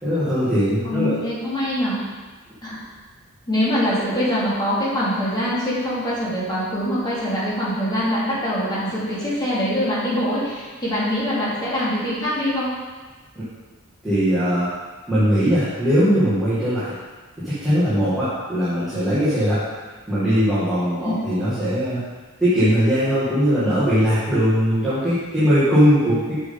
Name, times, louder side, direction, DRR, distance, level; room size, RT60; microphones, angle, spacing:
voice 1, 0.0-1.2 14.0-14.7 15.1-17.0 17.4-19.6 20.1-22.0 22.4-26.5, equal, ahead, -14 dB, 2.2 m, -20 dB
voice 2, 0.8-2.0 2.6-2.8 3.5-12.7 21.0-21.1, equal, 20° left, -9 dB, 2.7 m, -23 dB
7.8 x 6.2 x 3.9 m, 1.3 s
head